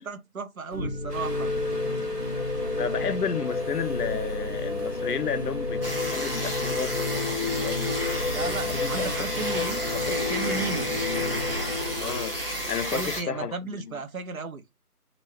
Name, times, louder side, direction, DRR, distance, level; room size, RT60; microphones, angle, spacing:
voice 1, 0.0-1.5 8.3-9.8 10.1-10.9 12.9-14.6, right 4 dB, 65° right, 0.5 m, -34 dB
sound 1, 0.7-12.7, left 2 dB, 35° left, 0.7 m, -31 dB
sound 2, 1.1-11.5, right 1 dB, 85° right, 1.2 m, -46 dB
voice 2, 2.8-7.7 8.8-9.1 9.6-9.7 10.1-10.3 12.0-12.4 12.7-13.9, left 7 dB, 75° left, 0.6 m, -32 dB
sound 3, 5.8-13.2, left 1 dB, 35° right, 0.9 m, -31 dB
2.7 x 2.6 x 3.0 m
figure-of-eight pair, 160°, 46 cm